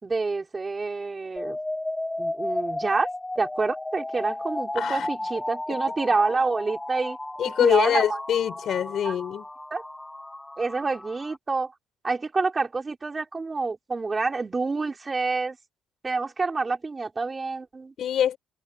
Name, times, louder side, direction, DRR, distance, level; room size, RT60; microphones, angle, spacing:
voice 1, 0.0-1.6 2.2-3.1 3.4-7.2 7.6-8.2 9.1-9.2 9.7-9.8 10.6-11.7 12.0-15.6 16.0-17.9, right 3 dB, 20° right, 5.4 m, -27 dB
sound 1, 1.4-11.4, left 1 dB, 10° left, 2.1 m, -33 dB
voice 2, 4.7-5.2 7.4-9.4 18.0-18.4, left 9 dB, 50° left, 6.3 m, -24 dB
cardioid pair, 170°, 0 cm